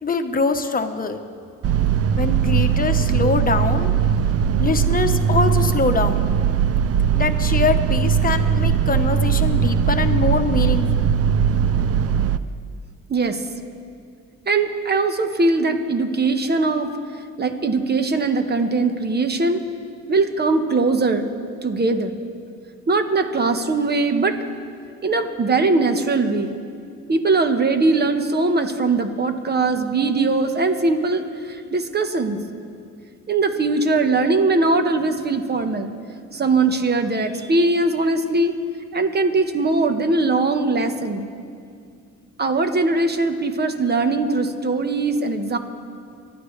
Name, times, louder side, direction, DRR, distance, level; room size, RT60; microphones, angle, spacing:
voice 1, 0.0-1.2 2.2-3.9 4.6-6.3 7.1-10.9, left 4 dB, 30° left, 7 dB, 1.1 m, -23 dB
sound 1, 1.6-12.4, right 8 dB, 50° right, 0.6 m, -19 dB
voice 2, 13.1-13.4 14.5-16.9 17.4-19.6 20.1-21.2 21.6-22.1 22.9-24.4 25.0-26.5 27.1-32.4 33.3-35.9 36.3-38.5 38.9-41.3 42.4-45.6, right 3 dB, 35° right, 7 dB, 1.3 m, -20 dB
24.5 x 11.5 x 3.3 m, 2.3 s
cardioid pair, 90°, 30 cm